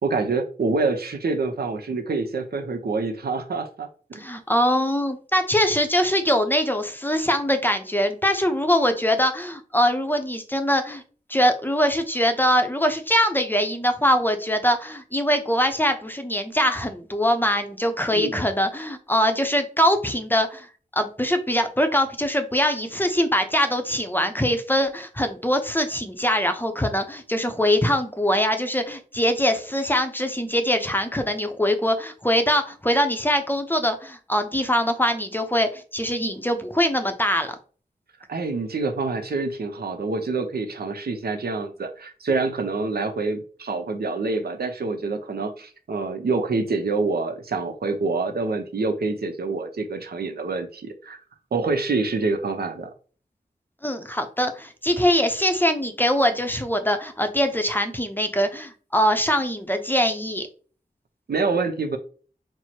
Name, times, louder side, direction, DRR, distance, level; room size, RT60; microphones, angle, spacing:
voice 1, 0.0-4.2 18.1-18.3 38.3-51.2 51.5-52.9 61.3-62.0, right 3 dB, 75° right, 6 dB, 0.7 m, -26 dB
voice 2, 4.1-11.0 11.3-20.7 20.9-37.6 53.8-60.5, equal, 10° left, 7 dB, 0.6 m, -22 dB
4.5 x 2.0 x 4.3 m, 0.40 s
wide cardioid pair, 95°, 16 cm